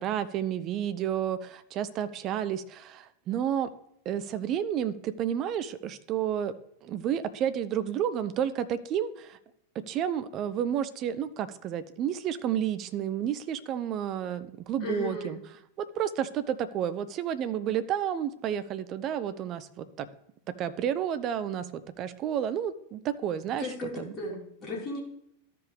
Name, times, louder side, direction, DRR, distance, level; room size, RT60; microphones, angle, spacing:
voice 1, 0.0-3.7 4.1-6.5 6.8-9.4 9.9-15.4 15.8-20.1 20.5-23.7 24.0-24.1, right 9 dB, 35° right, 13 dB, 0.5 m, -31 dB
voice 2, 14.8-15.3 23.6-25.0, left 2 dB, 30° left, -5 dB, 3.2 m, -35 dB
13.5 x 5.1 x 3.3 m, 0.74 s
figure-of-eight pair, 90°, 0 cm